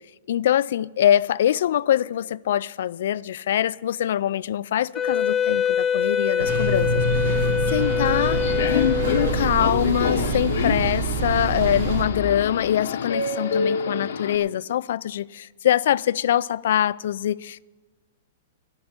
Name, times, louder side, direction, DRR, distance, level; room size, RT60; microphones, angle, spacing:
voice 1, 0.3-7.4 7.7-8.4 8.7-8.9 9.2-17.6, left 11 dB, 65° left, 0.3 m, -24 dB
Wind instrument woodwind instrument, 4.9-9.5, left 7 dB, 15° left, 0.6 m, -24 dB
sound 1, 6.4-12.1, right 3 dB, 75° right, 1.8 m, -26 dB
Subway metro underground, 7.8-14.4, left 6 dB, 80° left, 1.1 m, -27 dB
12.0 x 7.2 x 9.6 m
hypercardioid pair, 160°, 0 cm